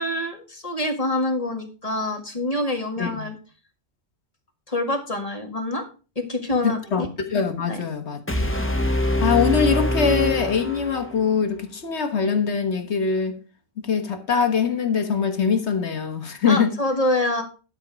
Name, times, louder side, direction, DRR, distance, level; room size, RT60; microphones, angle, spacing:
voice 1, 0.0-3.4 4.7-5.9 6.2-7.1 7.7-7.8 16.5-17.4, left 1 dB, 35° left, 1.9 m, -26 dB
voice 2, 6.6-8.5 9.2-13.4 13.8-16.7, left 6 dB, 85° left, 1.6 m, -23 dB
sound 1, 8.3-11.3, left 1 dB, 10° left, 0.9 m, -24 dB
12.0 x 4.4 x 6.2 m
omnidirectional pair, 1.1 m